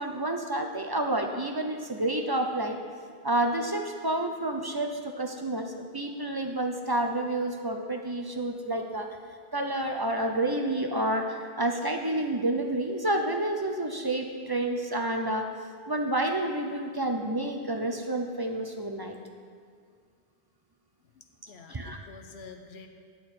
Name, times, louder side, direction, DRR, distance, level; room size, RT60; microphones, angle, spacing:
voice 1, 0.0-2.8 3.2-9.1 9.5-15.5 15.9-19.2 21.7-22.0, right 1 dB, 30° right, 3 dB, 0.5 m, -29 dB
voice 2, 21.1-22.9, left 4 dB, 85° left, 5 dB, 1.0 m, -48 dB
9.3 x 8.4 x 4.3 m, 2.1 s
omnidirectional pair, 1.0 m